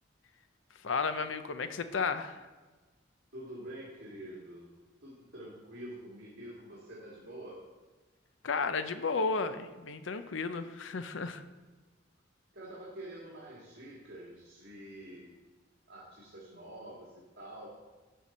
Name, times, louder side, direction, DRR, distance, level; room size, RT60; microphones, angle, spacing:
voice 1, 0.8-2.4 8.4-11.4, left 4 dB, 70° left, 10 dB, 0.6 m, -33 dB
voice 2, 3.3-4.7 5.0-7.6 12.5-15.3 15.9-17.7, right 1 dB, 55° right, -6 dB, 2.1 m, -47 dB
11.0 x 5.6 x 4.3 m, 1.3 s
head